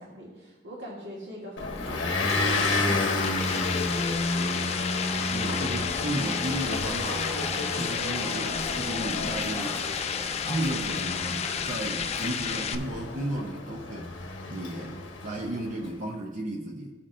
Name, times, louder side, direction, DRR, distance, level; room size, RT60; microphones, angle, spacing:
voice 1, 0.0-4.8, equal, 70° right, -5 dB, 1.6 m, -42 dB
Motor vehicle (road) / Engine, 1.6-15.8, left 2 dB, 90° left, 1.0 m, -31 dB
sound 1, 1.8-12.8, left 7 dB, 35° left, 0.4 m, -32 dB
voice 2, 5.3-9.8 10.4-14.1 14.5-15.0 15.2-16.9, right 1 dB, 45° right, 0 dB, 0.6 m, -34 dB
sound 2, 5.7-13.3, left 2 dB, 15° left, 0.9 m, -41 dB
15.0 x 5.8 x 2.5 m, 1.2 s
head